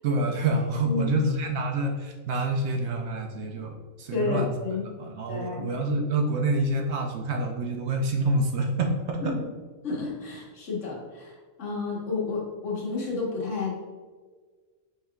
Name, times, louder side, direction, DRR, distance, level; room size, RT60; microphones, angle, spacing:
voice 1, 0.0-4.5 5.0-9.3, right 2 dB, 65° right, 2 dB, 0.8 m, -27 dB
voice 2, 0.8-1.2 4.1-4.8 5.3-5.7 9.8-13.7, left 4 dB, 70° left, -4 dB, 1.5 m, -31 dB
5.5 x 3.8 x 2.3 m, 1.4 s
omnidirectional pair, 1.4 m